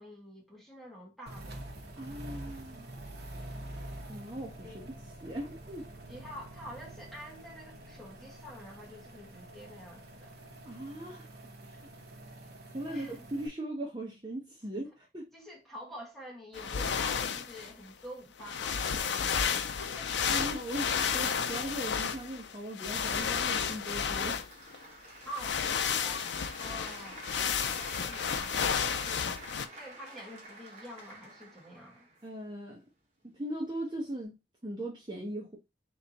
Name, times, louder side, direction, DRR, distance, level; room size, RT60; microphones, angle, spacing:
voice 1, 0.0-1.6 4.6-4.9 6.1-10.3 12.9-13.2 15.3-20.7 25.2-26.3 26.6-27.2 27.5-29.3 29.7-32.1, equal, ahead, 1.6 m, -47 dB
sound 1, 1.3-13.5, right 1 dB, 60° right, 1.0 m, -46 dB
voice 2, 2.0-2.9 4.1-4.8 5.2-5.9 10.6-11.3 12.7-15.3 20.3-24.4 32.2-32.8 33.2-35.6, right 1 dB, 25° right, 0.7 m, -39 dB
sound 2, 16.5-17.7 18.4-24.8 25.2-29.7, left 7 dB, 80° left, 0.5 m, -32 dB
Applause, 23.6-32.6, right 2 dB, 40° right, 1.3 m, -49 dB
3.3 x 3.1 x 3.9 m
head